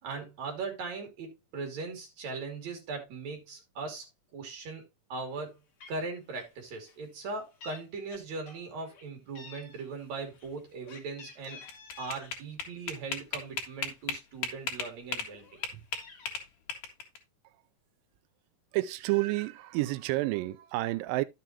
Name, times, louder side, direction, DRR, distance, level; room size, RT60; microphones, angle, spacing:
voice 1, 0.0-4.0 4.3-4.8 5.1-5.6 5.9-11.6 12.0-15.5, right 4 dB, 55° right, 3.8 m, -39 dB
Meow, 5.4-5.5 5.8-6.1 6.3-6.6 6.9-7.8 8.1-9.0 9.4-12.3 12.7-13.9 14.3-14.4 14.7-16.3, left 5 dB, 45° left, 2.4 m, -51 dB
sound 1, 11.4-15.3 15.6-17.2, left 6 dB, 65° left, 3.0 m, -35 dB
voice 2, 18.7-21.2, right 19 dB, 85° right, 2.3 m, -29 dB
11.0 x 7.0 x 2.9 m
omnidirectional pair, 4.0 m